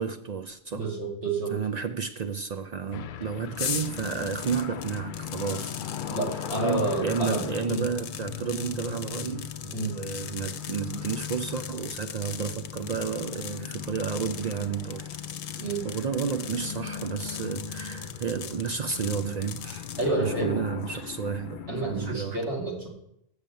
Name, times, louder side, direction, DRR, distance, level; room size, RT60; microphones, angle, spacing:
voice 1, 0.0-0.9 1.5-15.1 15.5-19.9 20.2-22.4, right 6 dB, 55° right, 0.4 m, -32 dB
voice 2, 0.7-1.5 6.1-7.9 9.7-10.0 15.6-15.8 20.0-20.6 21.7-22.9, right 3 dB, 90° right, 2.4 m, -29 dB
sound 1, 2.9-22.2, left 8 dB, 60° left, 0.6 m, -38 dB
sound 2, 3.6-20.1, left 8 dB, 85° left, 1.0 m, -40 dB
6.8 x 6.6 x 7.5 m
omnidirectional pair, 1.1 m